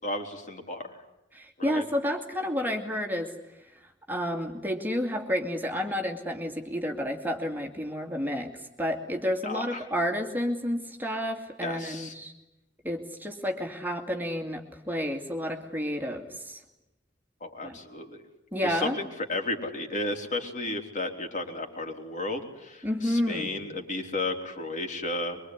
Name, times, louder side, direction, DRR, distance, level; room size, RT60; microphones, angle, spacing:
voice 1, 0.0-0.9 1.6-1.8 9.4-9.8 11.6-12.1 17.4-18.2 18.6-25.4, left 2 dB, 45° left, 3 dB, 4.3 m, -33 dB
voice 2, 1.3-3.3 4.1-8.5 8.8-12.3 12.8-16.6 17.6-17.8 18.5-19.0 22.8-23.5, equal, 10° right, 3 dB, 2.3 m, -30 dB
24.5 x 24.0 x 9.8 m, 0.92 s
head